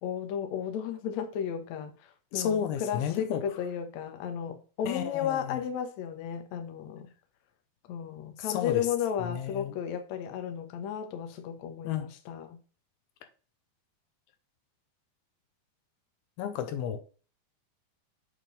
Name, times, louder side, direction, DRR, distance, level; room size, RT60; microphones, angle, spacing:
voice 1, 0.0-7.1 7.9-12.6, left 8 dB, 65° left, 1.9 m, -34 dB
voice 2, 2.3-3.4 4.8-5.6 8.4-8.9 9.2-9.8 11.8-12.1 16.4-17.0, left 9 dB, 80° left, 2.8 m, -32 dB
8.8 x 3.8 x 5.3 m
omnidirectional pair, 4.6 m